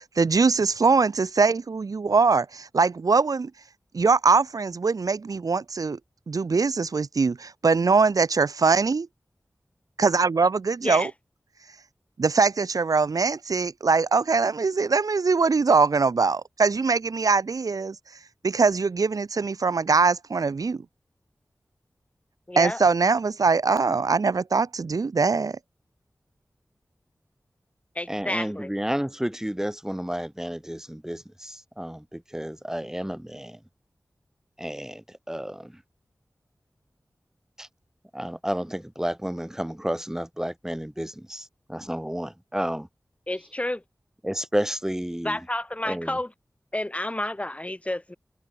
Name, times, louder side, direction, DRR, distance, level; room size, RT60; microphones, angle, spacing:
voice 1, 0.0-3.5 3.9-6.0 6.3-9.1 10.0-11.1 12.2-18.0 18.4-20.8 22.6-25.6, right 4 dB, 80° right, 2.3 m, -22 dB
voice 2, 22.5-22.8 27.9-28.7 43.3-43.8 45.2-46.3 46.7-48.2, left 1 dB, 20° left, 3.4 m, -30 dB
voice 3, 28.1-33.6 34.6-35.8 37.6-37.7 38.1-42.9 44.2-45.5 45.8-46.2, equal, 10° right, 5.4 m, -31 dB
wide cardioid pair, 70°, 6 cm